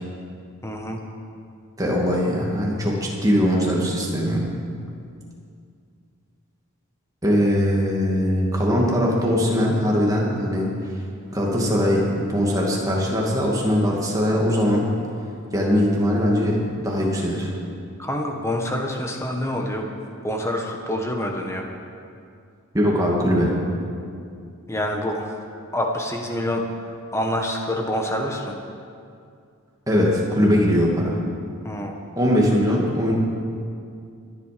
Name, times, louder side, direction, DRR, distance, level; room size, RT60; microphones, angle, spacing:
voice 1, 0.6-1.0 18.0-19.9 20.2-21.7 24.7-25.4 25.7-28.6 31.6-32.0, left 1 dB, 10° left, 2 dB, 1.4 m, -27 dB
voice 2, 1.8-4.5 7.2-10.7 11.3-14.9 15.5-17.5 22.7-23.6 29.9-31.2 32.2-33.1, equal, 15° right, -3 dB, 2.2 m, -21 dB
20.0 x 10.5 x 5.2 m, 2.4 s
head